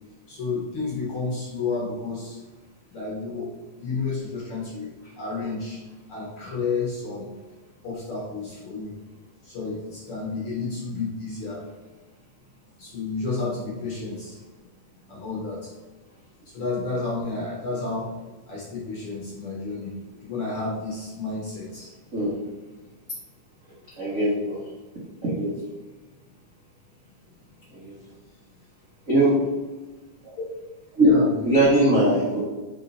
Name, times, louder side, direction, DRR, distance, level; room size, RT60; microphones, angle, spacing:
voice 1, 0.3-2.4 2.9-4.9 5.2-5.8 6.1-7.3 7.8-8.9 9.4-11.6 12.8-14.4 15.1-15.7 16.4-18.1 18.5-19.9 20.2-21.9 30.4-30.5 31.0-31.3, left 3 dB, 60° left, -4 dB, 1.5 m, -31 dB
voice 2, 24.0-24.6 25.2-25.5 27.8-27.9 29.1-29.4 31.0-31.1 31.4-32.4, right 1 dB, 50° right, -9 dB, 0.9 m, -20 dB
5.5 x 4.8 x 4.0 m, 1.2 s
omnidirectional pair, 3.7 m